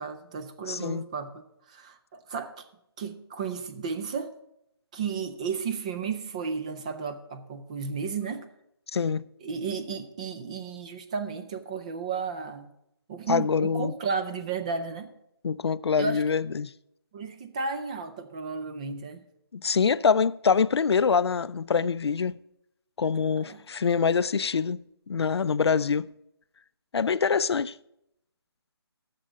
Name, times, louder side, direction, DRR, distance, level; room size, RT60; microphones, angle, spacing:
voice 1, 0.0-2.7 3.0-4.3 4.9-8.5 9.4-12.7 13.1-15.1 16.0-16.2 17.1-19.2 23.2-23.6, right 5 dB, 15° right, 0.4 m, -33 dB
voice 2, 0.7-1.0 8.9-9.3 13.3-13.9 15.4-16.7 19.5-22.4 23.0-26.1 26.9-27.7, left 6 dB, 85° left, 0.4 m, -25 dB
9.5 x 6.8 x 6.3 m
figure-of-eight pair, 160°, 13 cm